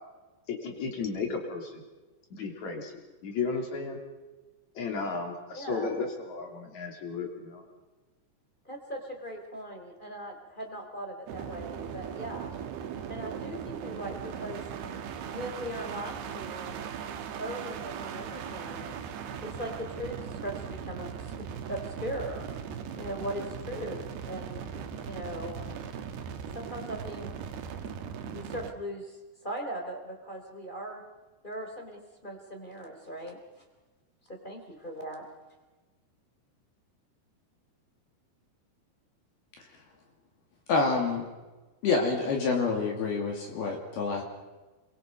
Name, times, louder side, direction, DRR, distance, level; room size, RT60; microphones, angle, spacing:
voice 1, 0.5-1.8 2.3-4.0 4.8-7.6, left 4 dB, 45° left, 3 dB, 4.0 m, -34 dB
voice 2, 5.5-5.9 8.6-12.5 13.1-14.6 15.3-16.8 17.4-19.0 19.4-22.5 23.0-24.6 25.0-25.7 26.5-27.3 28.3-31.0 31.4-33.4 34.3-35.2, equal, 10° left, 3 dB, 2.8 m, -39 dB
sound 1, 11.3-28.7, right 7 dB, 70° right, 3.1 m, -39 dB
voice 3, 40.7-41.3 41.8-44.2, left 4 dB, 60° left, 1 dB, 4.2 m, -27 dB
28.0 x 23.0 x 5.4 m, 1.2 s
omnidirectional pair, 5.2 m